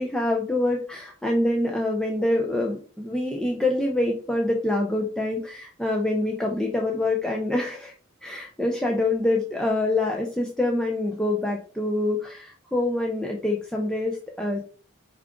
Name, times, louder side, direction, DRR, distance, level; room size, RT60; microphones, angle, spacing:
voice 1, 0.0-7.9 8.2-14.6, left 2 dB, 5° left, -1 dB, 0.3 m, -25 dB
4.7 x 2.4 x 3.5 m, 0.41 s
head